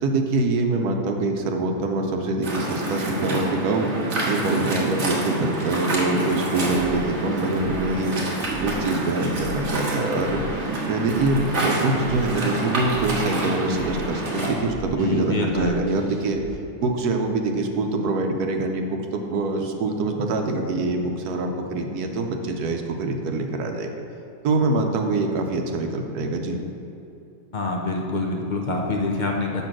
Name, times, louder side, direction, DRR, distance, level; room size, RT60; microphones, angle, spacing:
voice 1, 0.0-3.9 4.2-8.2 8.6-10.4 10.9-16.4 16.8-23.9 24.4-26.6, right 2 dB, 75° right, 4 dB, 1.3 m, -24 dB
Waves surf, 2.4-14.5, right 2 dB, 45° right, 1.5 m, -27 dB
sound 1, 6.7-16.5, equal, 25° right, 0.5 m, -40 dB
voice 2, 15.0-15.8 27.5-29.6, left 3 dB, 60° left, 0 dB, 0.5 m, -26 dB
6.9 x 5.3 x 6.1 m, 2.7 s
omnidirectional pair, 1.7 m